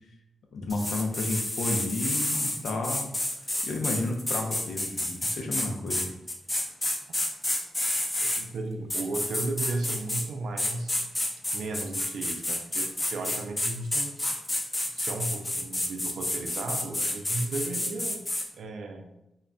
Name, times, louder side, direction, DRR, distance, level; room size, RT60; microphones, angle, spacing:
voice 1, 0.5-3.1 3.6-6.1, left 2 dB, 85° left, 2 dB, 0.5 m, -32 dB
sound 1, 0.7-8.4 8.9-10.3 10.6-18.5, left 1 dB, 15° left, 0.3 m, -30 dB
voice 2, 8.2-10.9 11.5-14.1 14.8-18.2 18.5-19.1, right 2 dB, 85° right, 5 dB, 0.4 m, -35 dB
2.2 x 2.1 x 3.6 m, 0.87 s
wide cardioid pair, 160°, 0 cm